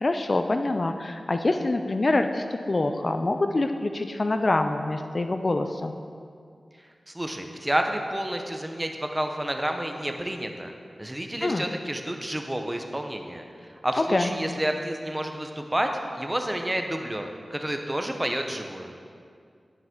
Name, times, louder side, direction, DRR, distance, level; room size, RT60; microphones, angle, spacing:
voice 1, 0.0-5.9 11.4-11.6 14.0-14.3, left 2 dB, 50° left, 7 dB, 0.4 m, -25 dB
voice 2, 7.1-10.7 11.0-13.4 13.8-18.9, right 1 dB, 15° right, 4 dB, 0.8 m, -30 dB
10.5 x 5.4 x 3.7 m, 2.2 s
cardioid pair, 50°, 0 cm